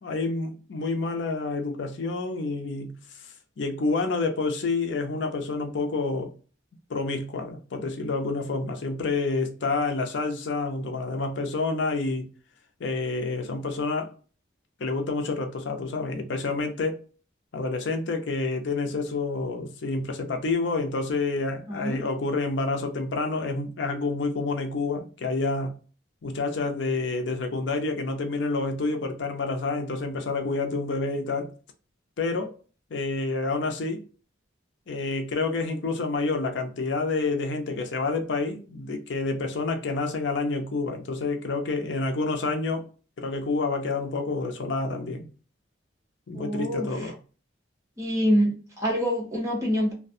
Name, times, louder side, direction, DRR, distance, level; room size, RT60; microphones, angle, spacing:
voice 1, 0.0-6.3 6.9-12.3 12.8-14.1 14.8-17.0 17.5-25.7 26.2-31.5 32.2-32.6 32.9-34.0 34.9-42.9 43.2-45.3 46.3-47.1, left 3 dB, 65° left, 0.5 m, -28 dB
voice 2, 21.7-22.0 46.3-47.1 48.0-49.9, equal, 15° right, 0.8 m, -26 dB
2.4 x 2.2 x 2.5 m
head